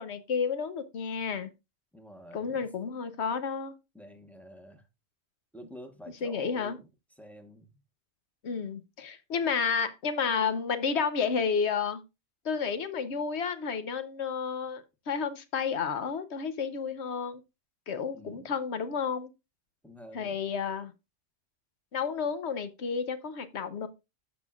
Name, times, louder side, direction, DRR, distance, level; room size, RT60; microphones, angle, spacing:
voice 1, 0.0-1.5 2.3-3.7 6.2-6.8 8.4-12.0 12.4-17.4 17.9-19.3 20.1-20.9 21.9-23.9, left 6 dB, 65° left, 1.1 m, -31 dB
voice 2, 1.9-2.7 3.9-4.8 5.5-6.9 7.2-7.8 18.1-18.5 19.8-20.4, equal, ahead, 0.9 m, -48 dB
13.0 x 5.6 x 2.4 m
omnidirectional pair, 1.3 m